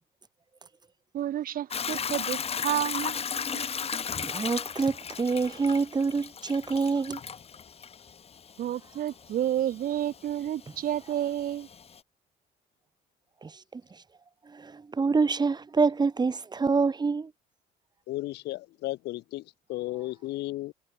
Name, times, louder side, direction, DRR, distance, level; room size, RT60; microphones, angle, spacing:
voice 1, 1.1-3.7 8.6-11.7, right 11 dB, 60° right, 1.7 m, -30 dB
Hiss / Toilet flush / Trickle dribble, 1.7-12.0, left 7 dB, 35° left, 2.6 m, -36 dB
voice 2, 4.2-7.2 13.4-14.0 14.5-17.3, right 4 dB, 25° right, 3.0 m, -27 dB
voice 3, 18.1-20.7, left 17 dB, 80° left, 2.2 m, -34 dB
cardioid pair, 110°, 17 cm